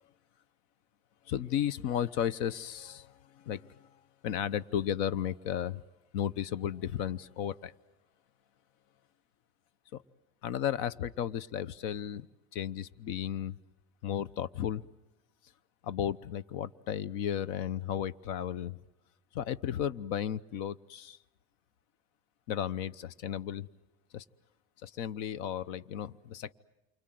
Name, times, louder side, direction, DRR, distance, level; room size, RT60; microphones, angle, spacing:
voice 1, 1.3-3.9 4.2-5.8 6.1-7.7 9.9-10.0 10.4-12.3 12.5-13.6 14.0-14.8 15.8-18.8 19.3-21.2 22.5-23.7 24.1-24.2 24.8-26.5, left 10 dB, 70° left, 18 dB, 0.9 m, -34 dB
28.5 x 24.5 x 7.8 m, 1.0 s
cardioid pair, 155°, 32 cm